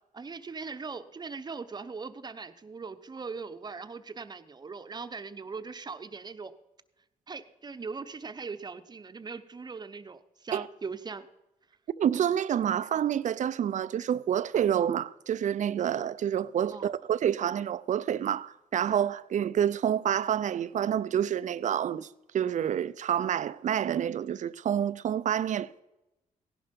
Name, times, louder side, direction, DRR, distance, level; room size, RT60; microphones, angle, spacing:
voice 1, 0.1-6.5 7.3-11.3 16.7-16.9, right 4 dB, 30° right, 0.9 m, -40 dB
voice 2, 12.0-22.1 22.3-25.8, right 9 dB, 60° right, 0.5 m, -28 dB
16.5 x 11.0 x 5.3 m
cardioid pair, 95°, 14 cm